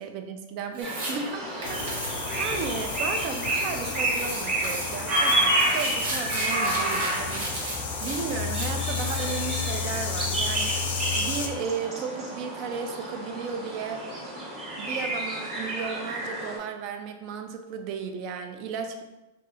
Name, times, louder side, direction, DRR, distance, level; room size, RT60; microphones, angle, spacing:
voice 1, 0.0-14.0 14.8-19.0, right 6 dB, 45° right, 6 dB, 0.4 m, -35 dB
sound 1, 0.7-1.1 1.6-3.8 4.1-9.5, right 2 dB, 75° right, 1.1 m, -36 dB
sound 2, 0.8-16.6, right 1 dB, 30° right, 0.9 m, -30 dB
sound 3, 1.6-11.5, left 6 dB, 70° left, 0.5 m, -33 dB
3.1 x 2.7 x 2.6 m, 1.0 s
supercardioid pair, 140°, 0 cm